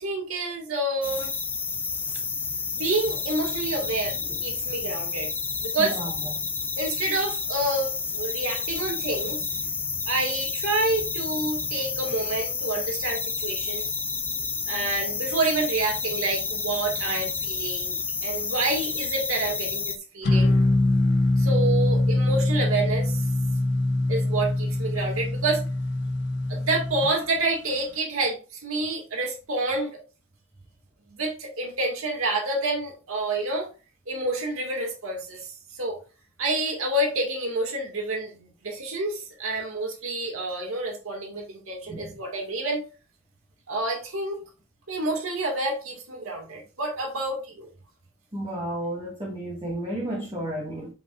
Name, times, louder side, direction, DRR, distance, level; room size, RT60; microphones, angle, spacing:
voice 1, 0.0-1.3 2.8-5.3 5.6-6.0 6.8-9.5 10.1-13.9 14.7-20.5 21.4-23.3 24.1-25.6 26.5-30.0 31.2-33.7 34.1-36.0 36.4-42.8 43.7-44.4 44.9-47.7, right 2 dB, 80° right, 2.2 m, -28 dB
sound 1, 1.0-20.0, left 5 dB, 10° left, 0.5 m, -30 dB
voice 2, 5.8-6.3 41.9-42.2 48.3-50.9, right 1 dB, 25° right, 2.0 m, -32 dB
sound 2, 20.2-27.1, left 2 dB, 55° left, 1.0 m, -23 dB
10.5 x 5.1 x 2.6 m
head